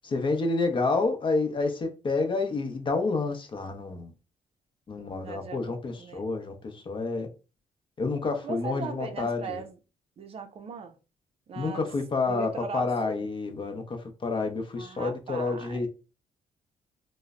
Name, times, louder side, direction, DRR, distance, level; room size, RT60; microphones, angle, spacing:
voice 1, 0.0-4.1 4.9-7.3 8.0-9.6 11.6-15.9, left 3 dB, 40° left, 0.7 m, -29 dB
voice 2, 5.0-6.2 8.4-9.8 10.2-11.0 11.5-11.9 12.3-13.3 14.8-15.9, right 5 dB, 50° right, 0.5 m, -39 dB
3.1 x 2.0 x 2.4 m
cardioid pair, 80°, 13 cm